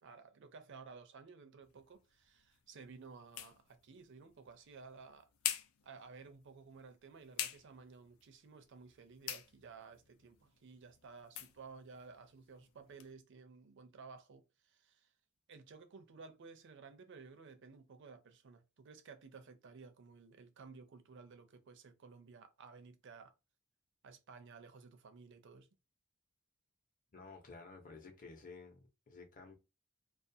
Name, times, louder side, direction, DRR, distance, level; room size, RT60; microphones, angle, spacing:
voice 1, 0.0-5.3 5.8-15.1 15.5-23.3 24.0-25.7, right 4 dB, 60° right, 0.5 m, -55 dB
sound 1, 1.6-13.1, left 10 dB, 80° left, 0.4 m, -48 dB
voice 2, 27.1-29.5, left 4 dB, 40° left, 0.8 m, -53 dB
2.4 x 2.2 x 2.6 m
head